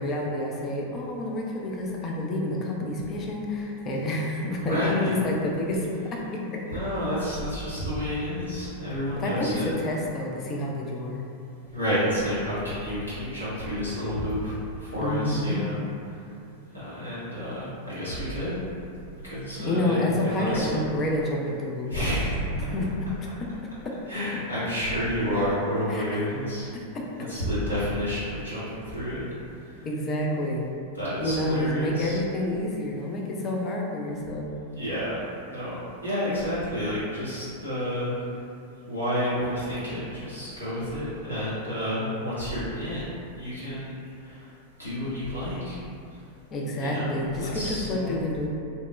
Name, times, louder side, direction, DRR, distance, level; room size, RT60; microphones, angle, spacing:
voice 1, 0.0-6.2 6.5-6.6 9.1-11.2 15.0-15.7 19.6-21.9 22.6-22.9 23.8-23.9 25.9-26.0 26.9-27.3 29.8-30.7 31.2-34.5 46.5-48.5, left 1 dB, 30° left, -1 dB, 0.4 m, -28 dB
voice 2, 4.6-5.1 6.7-9.7 11.7-15.8 16.1-16.2 16.7-18.5 19.2-20.8 21.9-22.3 24.1-26.7 27.3-29.3 30.9-32.2 34.8-35.8 36.0-38.1 38.9-44.5 44.8-45.8 46.8-48.1, equal, 85° left, -12 dB, 1.0 m, -30 dB
2.8 x 2.1 x 2.3 m, 2.5 s
figure-of-eight pair, 90°, 0 cm